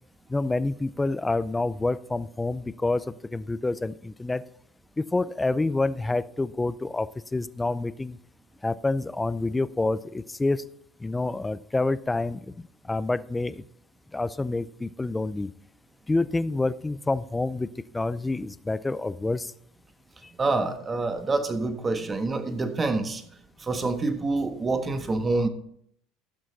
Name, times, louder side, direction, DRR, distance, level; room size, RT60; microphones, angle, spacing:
voice 1, 0.3-4.4 5.0-8.2 8.6-10.6 11.0-13.6 14.1-15.5 16.1-19.5 20.2-20.3, left 2 dB, 15° left, 16 dB, 0.5 m, -28 dB
voice 2, 20.3-23.2 23.6-25.5, right 3 dB, 25° right, 8 dB, 1.4 m, -27 dB
15.0 x 6.3 x 4.0 m, 0.67 s
supercardioid pair, 90°, 0 cm